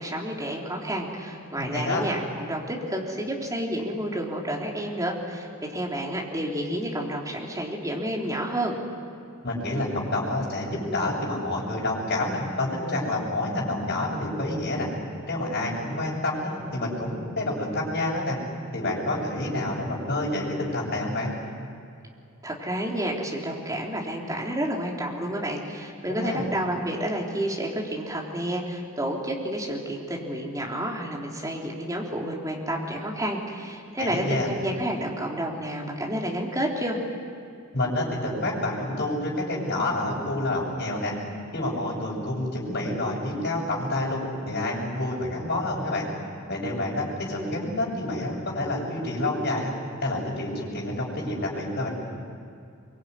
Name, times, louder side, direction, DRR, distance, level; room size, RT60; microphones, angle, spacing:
voice 1, 0.0-8.8 22.4-37.0, right 1 dB, 15° right, -1 dB, 3.6 m, -30 dB
voice 2, 1.5-2.1 9.4-14.9 15.3-18.4 18.7-21.3 26.1-26.4 34.0-34.5 37.7-41.1 41.5-44.2 44.4-46.1 46.5-49.7 50.0-51.9, left 1 dB, 50° left, -4 dB, 7.4 m, -28 dB
23.5 x 23.5 x 9.7 m, 2.5 s
head